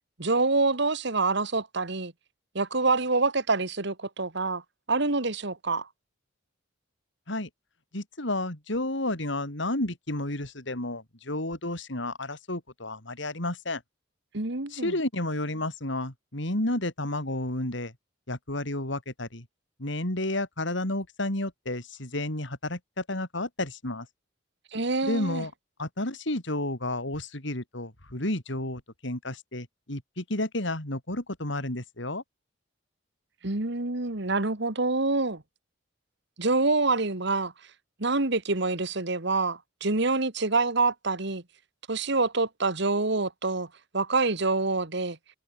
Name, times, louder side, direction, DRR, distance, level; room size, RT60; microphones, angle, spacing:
voice 1, 0.2-2.1 2.5-4.6 4.9-5.9 14.3-14.9 24.7-25.4 33.4-35.4 36.4-37.5 38.0-41.4 41.9-43.7 43.9-45.2, right 3 dB, 60° right, 2.1 m, -26 dB
voice 2, 7.9-13.8 14.7-17.9 18.3-19.5 19.8-24.1 25.0-25.5 25.8-32.2, left 1 dB, 65° left, 4.3 m, -31 dB
head